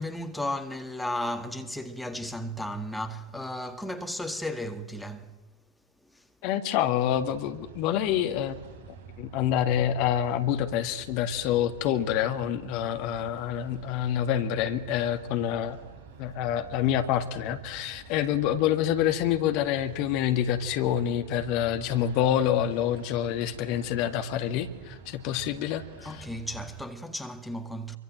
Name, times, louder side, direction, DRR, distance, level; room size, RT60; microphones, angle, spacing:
voice 1, 0.0-5.4 6.0-6.3 26.0-28.0, left 1 dB, ahead, 1.9 m, -34 dB
voice 2, 6.4-8.5 9.2-15.8 16.2-26.3, left 10 dB, 45° left, 1.8 m, -27 dB
sound 1, 7.1-26.8, right 5 dB, 50° right, 3.5 m, -48 dB
27.0 x 24.0 x 7.7 m
figure-of-eight pair, 90°, 0 cm